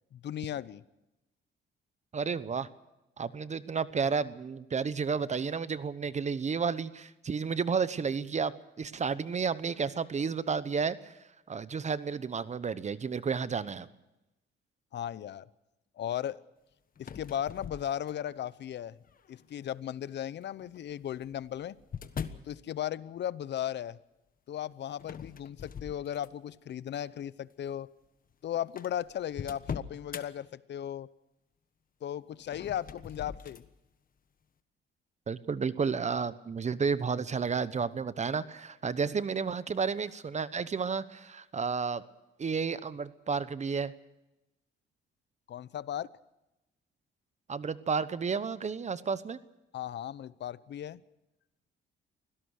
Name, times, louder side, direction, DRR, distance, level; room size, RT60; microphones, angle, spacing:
voice 1, 0.1-0.8 14.9-15.5 16.0-16.4 17.0-19.0 19.3-21.8 22.5-24.0 24.5-27.9 28.4-31.1 32.0-33.6 45.5-46.1 49.7-51.0, left 10 dB, 60° left, 18 dB, 0.8 m, -36 dB
voice 2, 2.1-2.7 3.2-11.1 11.5-13.9 35.3-42.0 42.4-43.9 47.5-49.4, right 5 dB, 35° right, 15 dB, 1.0 m, -32 dB
sound 1, 17.0-18.4 19.1-19.5 20.6-22.5 25.0-26.6 27.0-27.3 28.0-28.1 28.3-28.4 28.8-30.3 32.4-33.7, left 7 dB, 45° left, 1.3 m, -42 dB
24.5 x 17.5 x 6.6 m, 0.95 s
cardioid pair, 90°, 20 cm